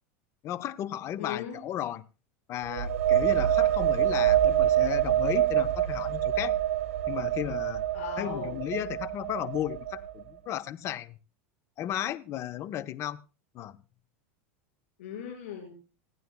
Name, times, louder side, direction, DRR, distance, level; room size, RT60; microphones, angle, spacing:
voice 1, 0.4-2.1 2.5-6.6 7.1-7.8 8.2-11.2 11.8-13.2 13.5-13.8, left 12 dB, 40° left, 14 dB, 0.7 m, -34 dB
voice 2, 1.2-1.6 7.9-8.6 15.0-15.7, left 8 dB, 80° left, 0 dB, 5.0 m, -38 dB
sound 1, 2.6-10.2, right 12 dB, 80° right, 0.9 m, -26 dB
27.0 x 9.3 x 2.2 m, 0.33 s
supercardioid pair, 120°, 7 cm